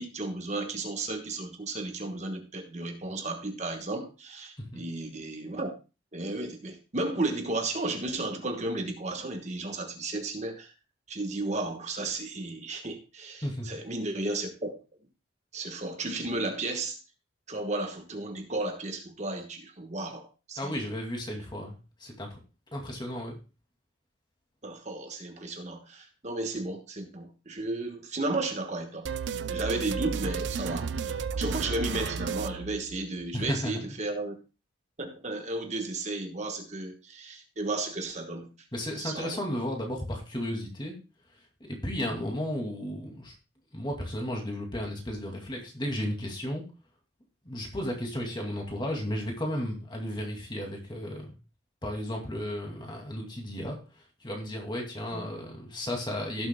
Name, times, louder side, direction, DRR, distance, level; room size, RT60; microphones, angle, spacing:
voice 1, 0.0-5.7 6.1-10.7 11.1-14.7 15.5-17.0 17.5-20.8 24.6-29.1 29.5-34.3 35.0-38.5 39.0-39.4 55.1-55.3, right 2 dB, 35° right, 5 dB, 1.2 m, -34 dB
voice 2, 20.6-22.4 22.7-23.4 33.3-33.9 38.7-41.0 41.7-43.3 43.7-46.6 47.4-51.4 51.8-53.8 54.2-56.5, equal, 25° left, 1 dB, 2.3 m, -34 dB
sound 1, 29.0-33.4, right 5 dB, 65° right, 0.4 m, -33 dB
16.5 x 7.6 x 2.2 m, 0.31 s
head